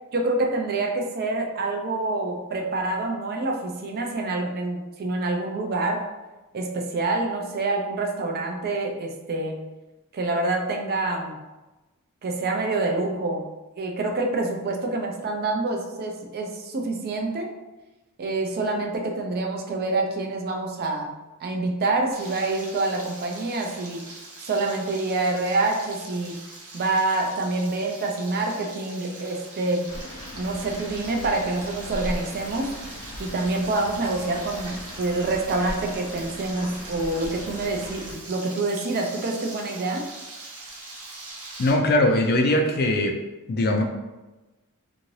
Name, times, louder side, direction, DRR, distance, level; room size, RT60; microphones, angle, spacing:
voice 1, 0.1-6.1 6.5-9.6 10.1-11.4 12.2-13.5 13.8-17.5 18.2-21.1 21.4-24.1 24.4-26.4 26.7-29.9 30.4-32.7 33.2-40.0, right 2 dB, 45° right, 1 dB, 0.4 m, -27 dB
Frying (food), 22.1-41.7, right 2 dB, 75° right, 0.7 m, -42 dB
sound 1, 29.9-38.2, left 1 dB, 75° left, 0.8 m, -39 dB
voice 2, 41.6-43.1 43.5-43.8, left 1 dB, 45° left, 3 dB, 0.4 m, -21 dB
2.7 x 2.6 x 3.0 m, 1.1 s
head